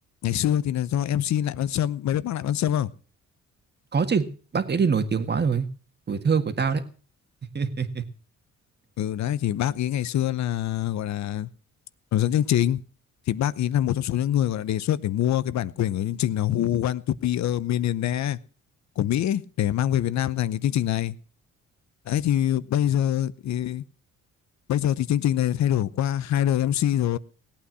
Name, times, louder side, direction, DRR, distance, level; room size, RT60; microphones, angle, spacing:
voice 1, 0.2-2.9 9.0-11.5 12.1-12.8 13.3-18.4 19.0-21.2 22.1-23.8 24.7-27.2, left 11 dB, 65° left, 0.9 m, -24 dB
voice 2, 3.9-5.7 6.1-6.8 7.5-8.0, right 5 dB, 35° right, 1.8 m, -24 dB
18.0 x 8.7 x 6.2 m
cardioid pair, 90°, 30 cm